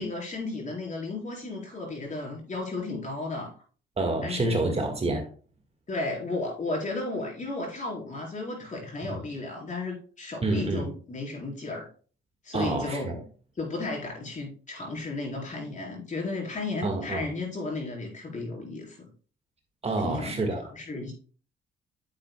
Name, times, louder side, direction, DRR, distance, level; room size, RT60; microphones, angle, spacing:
voice 1, 0.0-3.5 4.2-4.5 5.9-11.9 12.4-13.1 13.6-19.0 20.0-20.3 20.8-21.1, left 2 dB, 40° left, 4.4 m, -34 dB
voice 2, 4.0-5.3 9.0-9.1 10.4-10.8 12.5-13.1 16.8-17.3 19.8-20.6, right 2 dB, 30° right, 1.6 m, -28 dB
9.9 x 7.6 x 2.2 m
cardioid pair, 90°, 20 cm